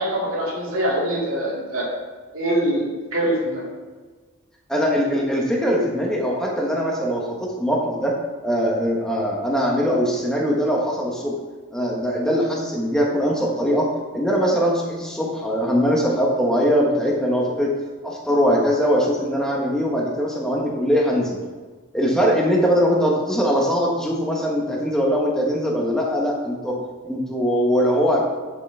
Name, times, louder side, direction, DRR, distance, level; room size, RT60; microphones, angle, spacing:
voice 1, 0.0-1.8 2.3-3.7, right 1 dB, 70° right, -4 dB, 2.3 m, -23 dB
voice 2, 4.7-8.1 8.4-11.3 11.7-17.7 18.0-21.4 21.9-28.2, equal, 5° left, -2 dB, 1.2 m, -21 dB
9.3 x 6.1 x 3.4 m, 1.4 s
head